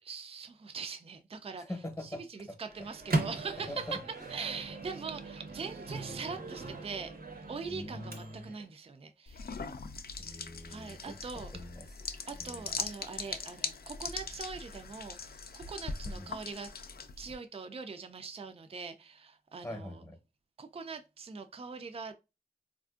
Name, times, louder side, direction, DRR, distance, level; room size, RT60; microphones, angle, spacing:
voice 1, 0.0-1.6 2.3-4.0 4.3-7.1 7.5-9.4 10.7-11.5 12.3-16.7 17.2-20.0 20.6-22.1, right 5 dB, 35° right, 0.4 m, -42 dB
voice 2, 1.6-2.2 2.5-2.6 3.7-4.0 7.7-8.5 10.2-11.2 11.5-11.9 12.4-12.9 16.1-16.3 19.6-20.2, left 1 dB, 20° left, 0.8 m, -43 dB
Microwave oven, 2.7-8.7, right 2 dB, 65° right, 0.7 m, -38 dB
sound 1, 9.3-17.3, left 4 dB, 70° left, 0.4 m, -41 dB
3.5 x 2.5 x 2.3 m
wide cardioid pair, 65°, 16 cm